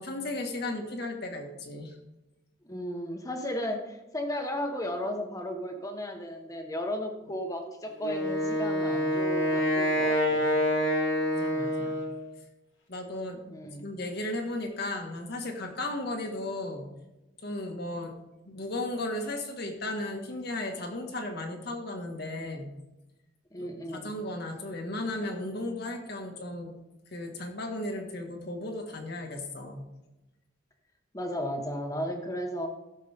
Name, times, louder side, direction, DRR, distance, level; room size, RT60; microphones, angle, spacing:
voice 1, 0.0-2.0 11.3-12.0 12.9-13.4 13.8-16.9 17.4-18.1 18.4-22.7 23.6-26.7 27.1-29.8, left 1 dB, 55° left, 3 dB, 1.8 m, -35 dB
voice 2, 2.6-10.5 13.5-13.8 23.5-24.1 31.1-32.7, equal, 15° left, 4 dB, 1.4 m, -34 dB
Wind instrument woodwind instrument, 8.0-12.3, left 1 dB, 70° left, 2.2 m, -27 dB
16.0 x 7.4 x 3.6 m, 1.0 s
head